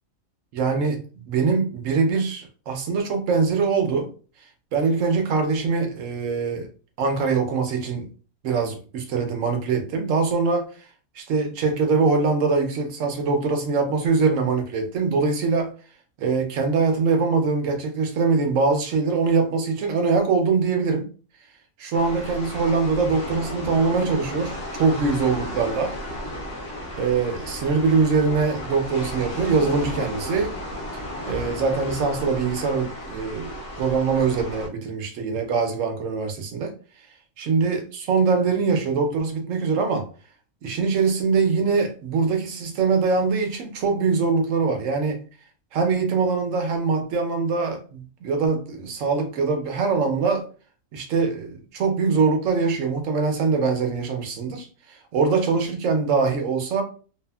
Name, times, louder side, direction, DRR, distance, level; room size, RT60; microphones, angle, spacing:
voice 1, 0.5-1.0 1.3-4.1 4.7-6.7 7.0-8.1 8.4-10.7 11.2-15.7 16.2-21.1 21.8-25.9 27.0-30.5 30.9-36.7 37.4-40.1 40.6-45.2 45.7-50.4 50.9-56.8, right 4 dB, 70° right, 0.9 m, -23 dB
sound 1, 21.9-34.7, left 1 dB, 60° left, 0.9 m, -34 dB
2.7 x 2.4 x 2.2 m
omnidirectional pair, 1.5 m